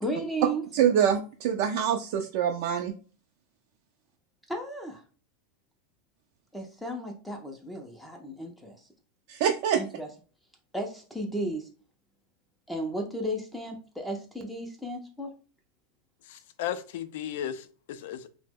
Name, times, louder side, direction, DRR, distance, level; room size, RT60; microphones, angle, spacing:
voice 1, 0.0-0.6 4.5-5.0 6.5-8.8 9.8-10.1 10.7-11.7 12.7-15.3, right 1 dB, ahead, 0.4 m, -34 dB
voice 2, 0.7-2.9 9.3-9.8, right 9 dB, 60° right, 0.3 m, -25 dB
voice 3, 16.3-18.3, left 10 dB, 70° left, 0.4 m, -35 dB
2.8 x 2.0 x 3.4 m
supercardioid pair, 135°, 0 cm